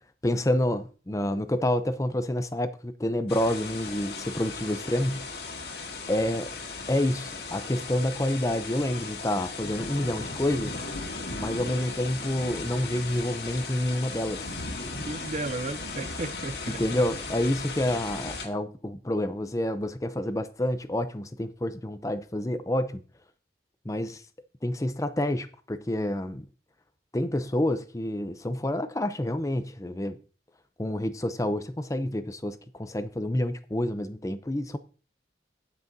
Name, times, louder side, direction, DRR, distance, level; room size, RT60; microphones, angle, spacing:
voice 1, 0.2-5.2 6.1-6.6 6.9-10.8 11.4-14.5 16.7-23.0 23.8-24.2 24.6-26.5 27.1-30.2 30.8-34.8, left 1 dB, 20° left, 0.6 m, -28 dB
sound 1, 3.3-18.5, left 3 dB, 60° left, 1.9 m, -37 dB
voice 2, 14.9-17.0, right 2 dB, 40° right, 0.5 m, -35 dB
16.0 x 6.1 x 2.7 m
head